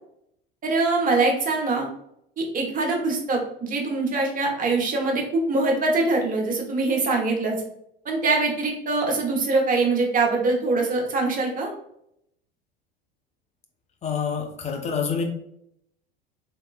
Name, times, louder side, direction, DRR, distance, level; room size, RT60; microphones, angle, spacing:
voice 1, 0.6-1.9 2.4-7.6 8.0-11.7, right 3 dB, 30° right, 0 dB, 1.0 m, -23 dB
voice 2, 14.0-15.2, left 6 dB, 25° left, 4 dB, 0.6 m, -27 dB
3.3 x 2.8 x 2.3 m, 0.74 s
hypercardioid pair, 75°, 29 cm